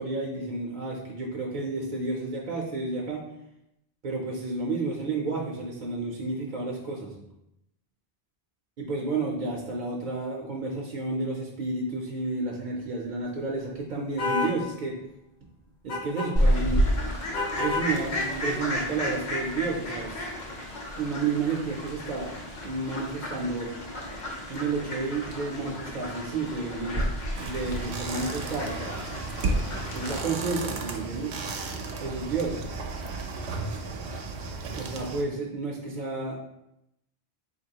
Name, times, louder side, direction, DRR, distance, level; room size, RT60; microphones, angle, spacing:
voice 1, 0.0-3.2 4.0-7.1 8.8-15.0 15.8-16.8 17.5-20.3 21.0-23.7 24.5-27.0 27.4-29.0 29.9-31.4 32.0-32.6 34.7-36.4, right 3 dB, 55° right, -2 dB, 0.6 m, -31 dB
sound 1, 14.2-14.6 15.9-16.3 17.3-17.9, left 3 dB, 85° left, 1.5 m, -28 dB
Fowl, 16.4-30.2, equal, 50° left, 0.8 m, -31 dB
sound 2, 27.3-35.2, right 3 dB, 85° right, 0.8 m, -33 dB
4.1 x 2.9 x 2.8 m, 0.83 s
omnidirectional pair, 1.1 m